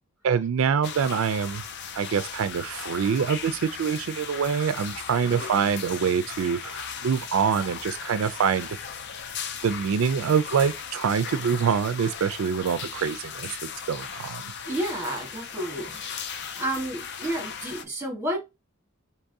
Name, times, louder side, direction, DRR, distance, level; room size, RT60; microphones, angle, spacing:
voice 1, 0.2-1.6 2.0-8.7 9.6-13.5 13.9-14.4, right 6 dB, 75° right, 0.4 m, -25 dB
sound 1, 0.8-17.8, left 7 dB, 55° left, 0.5 m, -37 dB
voice 2, 14.6-16.2 16.5-18.4, right 1 dB, 10° right, 1.5 m, -31 dB
4.6 x 2.9 x 2.6 m
head